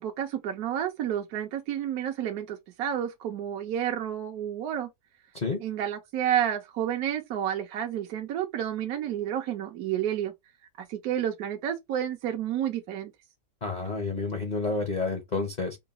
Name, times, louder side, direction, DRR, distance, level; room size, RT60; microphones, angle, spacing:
voice 1, 0.0-4.9 5.6-10.3 10.8-13.1, right 10 dB, 65° right, 1.0 m, -30 dB
voice 2, 13.6-15.8, left 3 dB, 35° left, 0.7 m, -30 dB
3.9 x 2.2 x 3.9 m
omnidirectional pair, 1.9 m